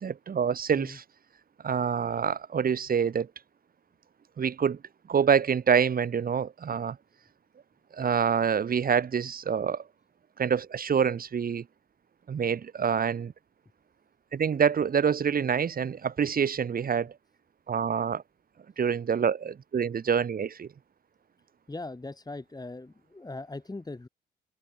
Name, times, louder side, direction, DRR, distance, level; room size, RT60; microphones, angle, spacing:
voice 1, 0.0-1.0 1.6-3.3 4.4-4.8 5.1-7.0 7.9-9.8 10.4-11.6 12.3-13.3 14.3-17.1 17.7-18.2 18.8-20.7, right 7 dB, 45° right, 1.9 m, -26 dB
voice 2, 21.7-24.1, left 2 dB, 20° left, 6.2 m, -40 dB
supercardioid pair, 60°, 20 cm